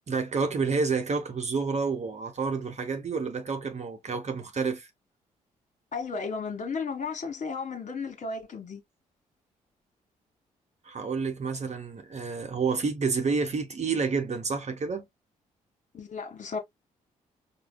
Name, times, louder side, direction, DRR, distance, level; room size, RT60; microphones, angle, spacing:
voice 1, 0.1-4.9 10.8-15.1, right 4 dB, 40° right, 1.0 m, -29 dB
voice 2, 5.9-8.8 15.9-16.6, left 4 dB, 45° left, 1.5 m, -34 dB
4.9 x 2.2 x 2.2 m
hypercardioid pair, 45°, 18 cm